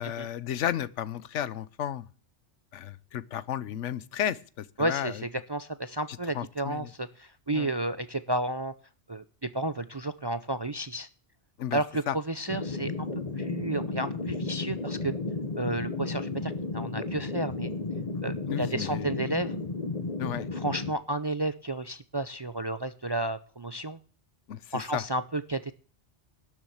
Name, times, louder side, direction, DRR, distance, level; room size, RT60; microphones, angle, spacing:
voice 1, 0.0-2.1 2.7-5.2 6.1-6.9 7.5-7.7 11.6-11.8 12.1-12.2 18.5-19.1 20.2-20.5 24.5-25.0, left 10 dB, 80° left, 1.1 m, -33 dB
voice 2, 4.8-8.7 9.1-11.1 11.7-13.1 13.4-15.1 15.6-17.7 18.2-19.6 20.5-24.0 24.7-25.7, right 1 dB, 35° right, 0.4 m, -32 dB
sound 1, 12.5-20.9, left 3 dB, 35° left, 1.4 m, -33 dB
12.0 x 7.1 x 7.9 m
omnidirectional pair, 1.2 m